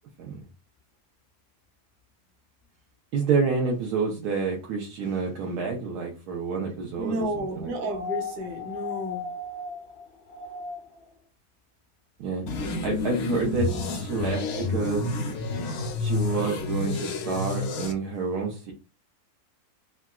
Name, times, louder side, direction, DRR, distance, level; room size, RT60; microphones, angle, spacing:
voice 1, 3.1-7.3 7.6-7.7 12.2-12.4 12.8-15.2 16.0-18.7, right 5 dB, 90° right, 1.2 m, -28 dB
voice 2, 7.0-9.3 13.7-13.9, right 1 dB, 55° right, 0.9 m, -32 dB
sound 1, 7.9-11.1 12.5-12.6, left 5 dB, 90° left, 1.3 m, -36 dB
sound 2, 12.5-17.9, left 3 dB, 75° left, 1.0 m, -29 dB
3.8 x 2.2 x 2.2 m
omnidirectional pair, 1.6 m